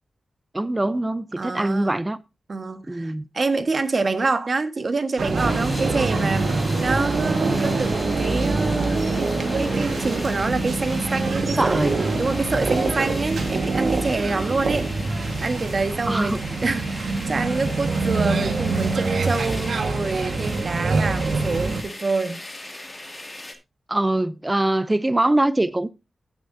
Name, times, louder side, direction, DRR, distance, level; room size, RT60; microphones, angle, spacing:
voice 1, 0.5-2.2 2.9-3.2 11.4-12.0 16.1-16.4 23.9-25.9, right 1 dB, 15° right, 0.6 m, -23 dB
voice 2, 1.4-2.0 2.5-6.5 6.8-9.3 9.6-11.8 12.2-14.9 15.4-16.3 16.6-22.4, right 3 dB, 45° right, 1.5 m, -26 dB
sound 1, 5.2-21.8, right 3 dB, 80° right, 1.5 m, -25 dB
sound 2, 5.3-23.5, left 1 dB, 20° left, 2.3 m, -37 dB
15.5 x 8.0 x 2.7 m
wide cardioid pair, 110°, 0 cm